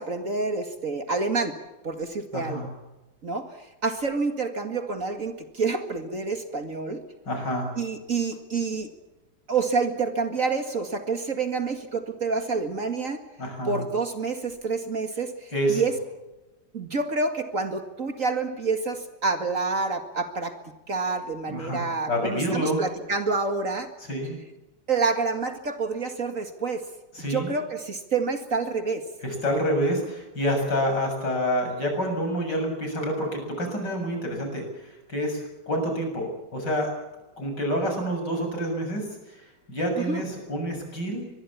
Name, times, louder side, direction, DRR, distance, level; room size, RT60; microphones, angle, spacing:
voice 1, 0.0-1.6 1.8-2.6 3.2-3.5 3.8-7.0 7.8-8.9 9.5-13.2 13.6-15.9 16.7-20.6 20.9-23.9 24.9-26.8 27.2-29.0 40.1-40.2, right 4 dB, 45° right, 7 dB, 2.3 m, -28 dB
voice 2, 2.3-2.7 7.3-7.7 13.4-13.9 15.5-15.8 21.5-22.8 24.0-24.4 27.1-27.5 29.2-36.9 37.4-41.2, equal, 65° left, 3 dB, 7.9 m, -28 dB
24.5 x 22.0 x 7.3 m, 1.0 s
omnidirectional pair, 2.0 m